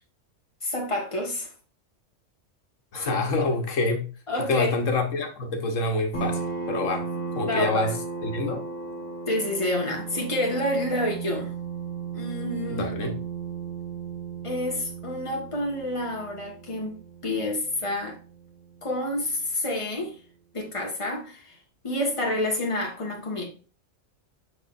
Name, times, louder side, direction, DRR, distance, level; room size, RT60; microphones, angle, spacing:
voice 1, 0.6-1.5 3.0-3.1 4.3-4.7 7.4-7.9 9.3-11.5 12.1-13.1 14.4-16.9 17.2-18.2 18.8-20.1 20.5-21.5 21.8-23.4, left 1 dB, 25° left, 1.6 m, -28 dB
voice 2, 2.9-4.1 4.4-6.4 6.7-7.0 7.3-8.0 8.2-8.6 12.7-13.1, left 2 dB, 85° left, 1.4 m, -26 dB
sound 1, 6.1-19.4, right 5 dB, 60° left, 1.8 m, -36 dB
6.5 x 5.9 x 2.5 m
omnidirectional pair, 1.3 m